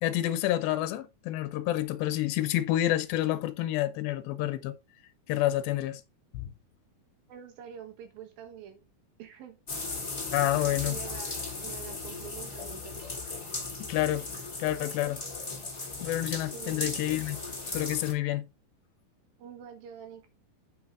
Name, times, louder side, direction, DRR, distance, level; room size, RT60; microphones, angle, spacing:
voice 1, 0.0-4.8 5.3-6.0 6.3-6.5 10.3-10.9 13.8-14.3 14.6-15.2 16.0-17.4 17.7-18.4, left 14 dB, 80° left, 2.5 m, -28 dB
voice 2, 7.3-8.8 9.2-9.6 10.6-13.0 16.5-17.0 19.4-20.3, right 9 dB, 75° right, 3.1 m, -46 dB
sound 1, 9.7-18.1, left 3 dB, 20° left, 1.3 m, -37 dB
7.9 x 5.1 x 3.6 m
omnidirectional pair, 4.2 m